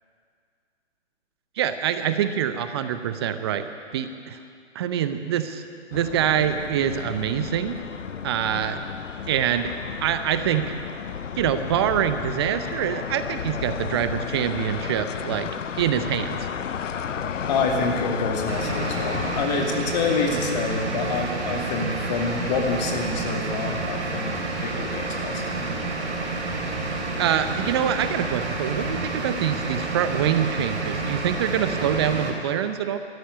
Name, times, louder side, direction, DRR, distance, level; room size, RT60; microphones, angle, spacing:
voice 1, 1.6-4.4 4.7-5.6 5.9-7.8 8.2-8.8 9.3-9.7 10.0-10.7 11.4-15.5 15.8-16.5 20.1-20.4 27.2-33.0, right 9 dB, 20° right, 10 dB, 0.6 m, -25 dB
sound 1, 5.9-19.5, left 7 dB, 85° left, 0.6 m, -33 dB
voice 2, 17.5-25.6, left 4 dB, 35° left, 1 dB, 2.4 m, -27 dB
sound 2, 18.5-32.3, right 3 dB, 65° right, 3.9 m, -29 dB
13.5 x 10.0 x 9.4 m, 2.2 s
figure-of-eight pair, 135°, 36 cm